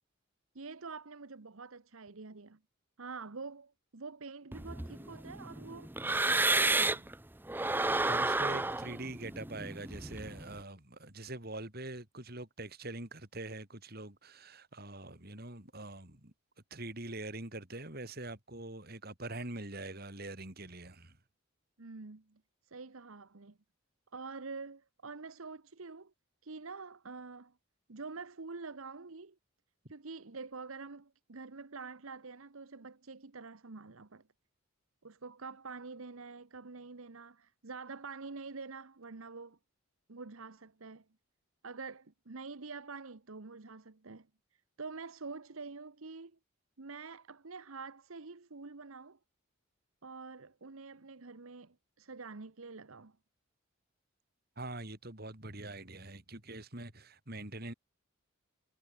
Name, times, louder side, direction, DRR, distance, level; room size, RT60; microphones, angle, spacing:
voice 1, 0.5-2.6 3.0-5.9 6.2-7.1 21.8-23.6 24.1-26.1 26.4-27.6 27.9-29.4 29.9-34.3 35.0-39.6 40.1-41.0 41.6-44.3 44.8-46.4 46.8-49.2 50.0-53.2, right 4 dB, 75° right, 1.1 m, -46 dB
sound 1, 4.5-7.1 7.5-10.5, right 2 dB, 10° right, 0.6 m, -31 dB
voice 2, 7.7-16.3 16.7-21.2 54.6-57.7, right 2 dB, 45° right, 3.8 m, -44 dB
head